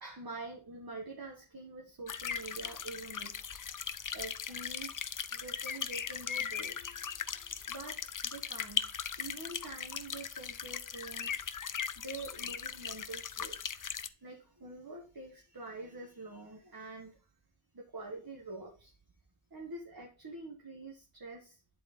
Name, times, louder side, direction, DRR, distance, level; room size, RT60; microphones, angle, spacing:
voice 1, 0.0-3.3 4.1-5.0 5.3-8.9 9.2-17.3 17.7-18.9 19.5-21.8, right 2 dB, 50° right, 0 dB, 1.4 m, -46 dB
sound 1, 2.1-14.1, left 7 dB, 45° left, 0.5 m, -39 dB
9.5 x 4.3 x 3.6 m, 0.35 s
wide cardioid pair, 50°, 48 cm